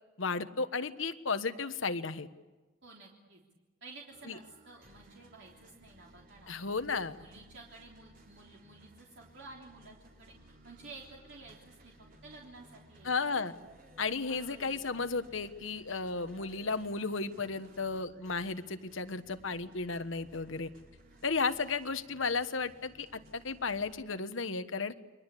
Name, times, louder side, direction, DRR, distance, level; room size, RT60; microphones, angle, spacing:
voice 1, 0.2-2.3 4.3-4.4 6.5-7.2 13.0-13.5 14.0-20.7 21.2-24.9, left 4 dB, 70° left, 10 dB, 1.3 m, -34 dB
voice 2, 2.8-3.4 3.8-6.5 7.0-10.3 10.6-11.9 12.2-13.4 14.3-14.8, right 3 dB, 60° right, -2 dB, 3.4 m, -52 dB
sound 1, 4.1-23.9, right 1 dB, 45° right, 3.9 m, -59 dB
30.0 x 23.5 x 8.4 m, 1.2 s
head